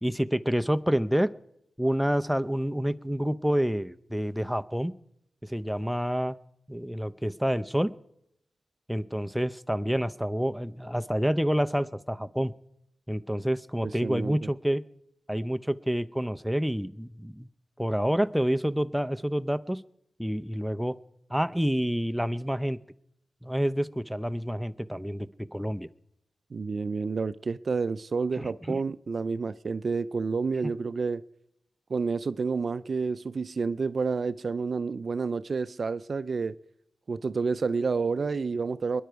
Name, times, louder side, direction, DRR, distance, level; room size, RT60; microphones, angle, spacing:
voice 1, 0.0-1.3 1.8-4.9 5.4-6.3 6.7-7.9 8.9-12.5 13.1-14.8 15.3-17.5 17.8-19.8 20.2-21.0 21.3-22.8 23.4-25.9 28.4-28.8, equal, ahead, 0.6 m, -28 dB
voice 2, 14.0-14.4 26.5-31.2 31.9-36.6 37.1-39.0, right 4 dB, 60° right, 0.4 m, -29 dB
21.5 x 10.5 x 4.7 m
cardioid pair, 45°, 0 cm